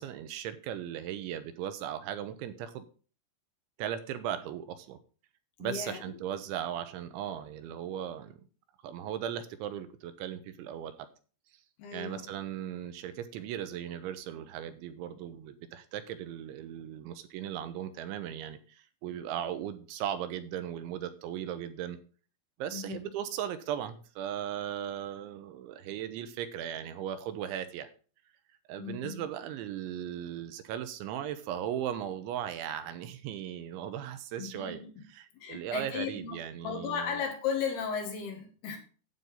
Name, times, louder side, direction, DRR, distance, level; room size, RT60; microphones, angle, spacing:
voice 1, 0.0-2.9 3.8-5.0 5.6-8.4 8.8-10.9 11.9-22.0 22.6-27.9 28.7-34.8 35.2-37.2, right 10 dB, 80° right, 3.1 m, -37 dB
voice 2, 5.6-6.0 11.8-12.3 22.7-23.1 28.8-29.3 34.4-34.9 35.3-36.4 36.6-38.8, left 6 dB, 65° left, 3.2 m, -35 dB
9.2 x 8.2 x 3.9 m
omnidirectional pair, 5.4 m